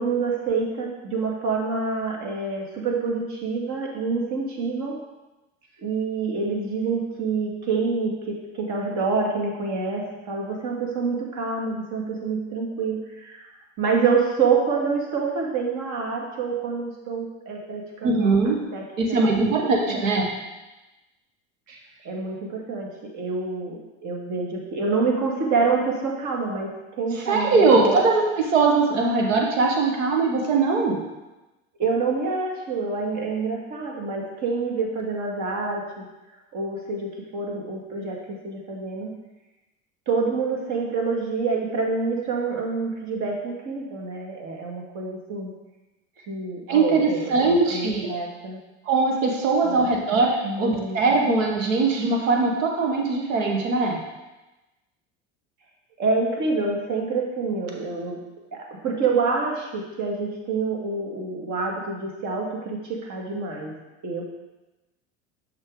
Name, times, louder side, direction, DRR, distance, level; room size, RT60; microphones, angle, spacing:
voice 1, 0.0-5.0 5.8-13.5 13.8-18.8 19.1-20.0 22.0-28.0 31.8-36.1 36.5-39.1 40.1-45.5 46.3-48.6 49.6-49.9 50.4-51.0 56.0-58.2 58.5-63.7 64.0-64.2, right 4 dB, 50° right, -1 dB, 1.9 m, -27 dB
voice 2, 18.0-18.6 19.0-20.3 21.7-21.8 27.3-31.0 46.7-48.1 48.8-54.0, right 3 dB, 80° right, 0 dB, 1.3 m, -21 dB
6.3 x 6.0 x 3.7 m, 1.1 s
hypercardioid pair, 80°, 38 cm